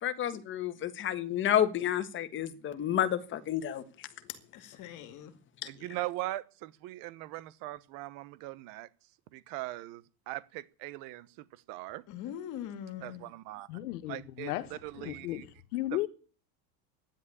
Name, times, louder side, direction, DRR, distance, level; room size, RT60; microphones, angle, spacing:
voice 1, 0.0-3.8, left 10 dB, 25° left, 1.5 m, -30 dB
voice 2, 4.5-5.3 5.7-5.9 12.1-13.3, left 10 dB, 40° left, 2.1 m, -42 dB
voice 3, 5.6-8.9 9.3-11.3 11.7-12.0 13.0-13.7 14.1-14.5 14.8-15.4, right 17 dB, 50° right, 1.2 m, -40 dB
voice 4, 13.7-16.1, left 16 dB, 85° left, 1.8 m, -35 dB
13.0 x 10.5 x 9.9 m
supercardioid pair, 155°, 44 cm